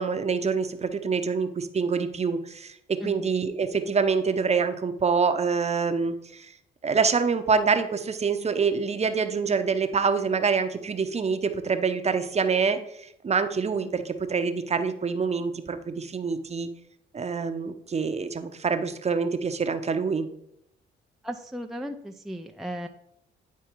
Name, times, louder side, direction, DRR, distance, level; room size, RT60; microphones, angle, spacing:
voice 1, 0.0-6.5 6.8-12.8 13.2-16.7 17.1-20.3, right 5 dB, 35° right, 9 dB, 0.8 m, -26 dB
voice 2, 21.2-22.9, equal, ahead, 4 dB, 0.5 m, -35 dB
9.6 x 4.6 x 4.6 m, 0.78 s
cardioid pair, 90°, 20 cm